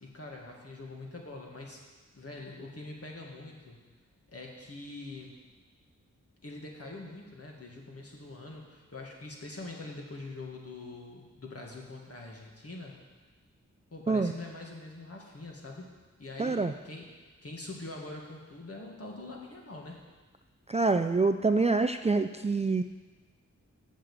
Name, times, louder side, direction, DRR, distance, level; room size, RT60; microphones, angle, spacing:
voice 1, 0.0-1.8 2.1-3.8 4.3-5.4 6.4-13.0 13.9-15.9 16.2-17.1 17.4-20.0, left 2 dB, 50° left, -1 dB, 2.0 m, -44 dB
voice 2, 16.4-16.7 20.7-22.8, right 3 dB, 20° right, 7 dB, 0.3 m, -26 dB
7.7 x 6.8 x 7.3 m, 1.3 s
wide cardioid pair, 60°, 31 cm